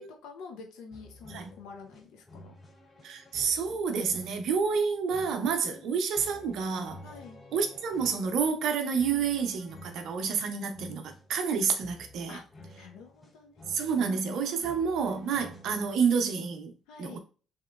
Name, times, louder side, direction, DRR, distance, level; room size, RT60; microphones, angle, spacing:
voice 1, 0.0-2.5 5.7-6.0 7.0-7.4 12.3-12.4 12.7-14.8 16.9-17.2, left 5 dB, 80° left, 0.7 m, -48 dB
sound 1, 0.9-16.3, left 2 dB, 25° left, 1.8 m, -52 dB
voice 2, 3.0-7.0 7.5-12.4 13.7-16.7 17.0-17.2, right 6 dB, 70° right, 0.6 m, -29 dB
3.5 x 3.0 x 2.3 m
hypercardioid pair, 60°, 0 cm